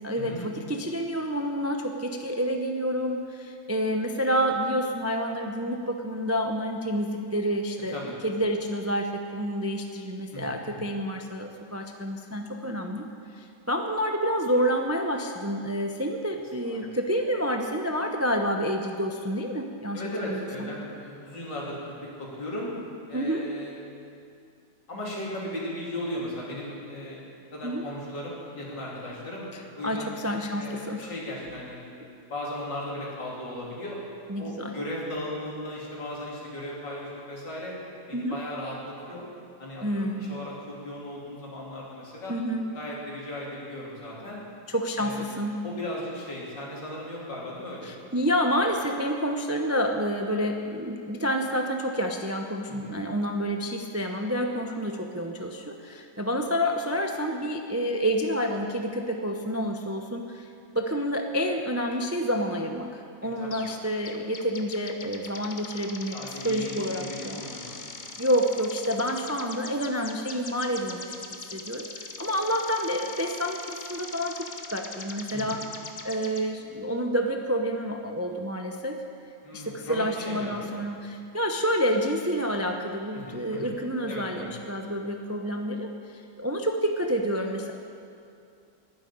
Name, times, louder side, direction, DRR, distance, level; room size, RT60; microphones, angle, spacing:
voice 1, 0.0-8.0 8.2-13.1 13.3-20.7 23.1-23.5 27.6-27.8 29.8-31.1 34.3-34.7 38.1-38.4 39.8-40.4 42.3-42.6 44.7-45.6 47.8-60.5 60.7-66.1 66.4-67.5 68.2-71.0 71.3-75.6 76.0-79.0 79.5-87.7, equal, 25° right, 3 dB, 0.3 m, -29 dB
voice 2, 10.3-10.9 16.6-16.8 19.9-22.7 23.1-23.7 24.9-27.2 27.5-29.4 29.8-30.1 30.6-34.0 34.4-37.8 38.1-39.3 39.6-42.3 42.7-44.4 45.0-45.3 45.6-47.9 52.7-53.0 63.4-63.6 66.1-67.8 75.3-75.6 79.4-80.8 83.1-83.7 84.1-84.5, left 1 dB, 85° left, -5 dB, 3.9 m, -37 dB
sound 1, 63.5-63.8 64.0-76.4, left 3 dB, 35° left, 0.9 m, -41 dB
12.0 x 9.9 x 10.0 m, 2.5 s
omnidirectional pair, 1.9 m